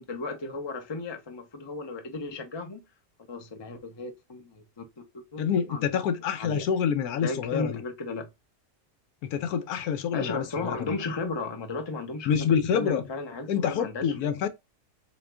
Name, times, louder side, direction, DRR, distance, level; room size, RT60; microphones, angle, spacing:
voice 1, 0.0-2.8 3.3-4.8 5.3-6.7 7.2-8.3 10.1-14.3, left 3 dB, 30° left, 0.5 m, -35 dB
voice 2, 5.4-7.8 9.2-10.9 12.3-13.0 13.5-14.5, left 7 dB, 80° left, 1.1 m, -27 dB
3.7 x 2.8 x 3.3 m
omnidirectional pair, 1.6 m